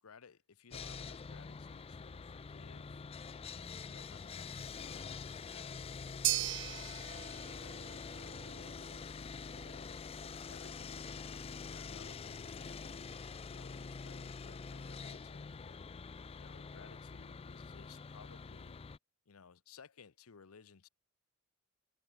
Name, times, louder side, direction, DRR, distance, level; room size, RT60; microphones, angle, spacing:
voice 1, 0.0-3.0 3.5-9.1 9.6-13.1 13.5-15.9 16.3-18.8 19.3-20.9, left 5 dB, 90° left, 0.8 m, -60 dB
Sawing, 0.7-19.0, left 5 dB, 30° left, 0.4 m, -46 dB
sound 1, 6.2-14.6, right 17 dB, 60° right, 0.5 m, -42 dB
Human voice, 7.8-10.6, left 2 dB, 70° left, 1.7 m, -66 dB
head